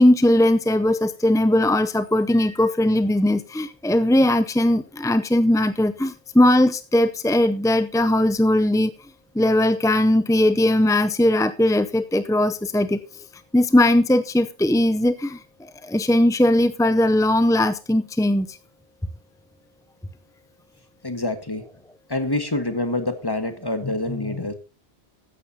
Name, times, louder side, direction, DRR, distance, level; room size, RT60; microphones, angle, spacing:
voice 1, 0.0-8.9 9.3-13.0 13.5-18.6, left 1 dB, 5° left, 11 dB, 0.3 m, -19 dB
voice 2, 21.0-21.7 22.1-24.5, left 2 dB, 20° left, 8 dB, 1.6 m, -26 dB
14.5 x 11.0 x 2.8 m, 0.31 s
omnidirectional pair, 1.1 m